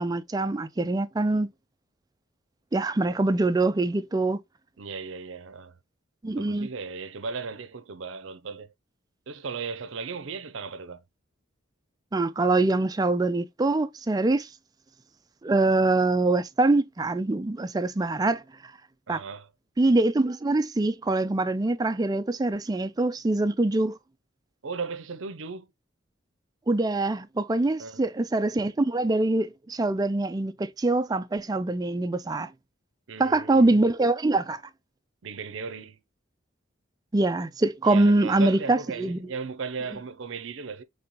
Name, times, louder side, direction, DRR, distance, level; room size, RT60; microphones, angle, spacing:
voice 1, 0.0-1.5 2.7-4.4 6.2-6.7 12.1-14.5 15.4-18.4 19.1-19.2 19.8-24.0 26.7-32.5 33.2-34.6 37.1-39.3, right 2 dB, 20° right, 0.3 m, -24 dB
voice 2, 4.8-5.8 6.3-8.7 9.3-11.0 19.1-19.5 24.6-25.7 27.8-28.0 33.1-33.8 35.2-36.0 37.8-40.8, right 4 dB, 70° right, 0.6 m, -36 dB
5.4 x 3.4 x 2.9 m
head